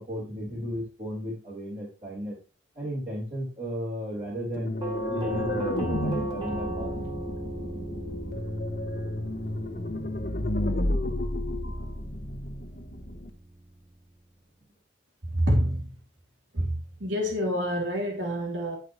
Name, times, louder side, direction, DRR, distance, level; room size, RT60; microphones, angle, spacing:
voice 1, 0.0-2.4 2.7-4.7 5.0-7.0 9.2-9.3, equal, 45° right, 4.1 m, -34 dB
sound 1, 4.5-13.3, left 1 dB, 55° left, 1.2 m, -32 dB
Doorbell, 4.8-13.6, right 1 dB, 25° right, 2.7 m, -37 dB
voice 2, 15.3-15.9 16.5-18.8, equal, 90° right, 3.0 m, -27 dB
12.0 x 5.6 x 3.2 m
head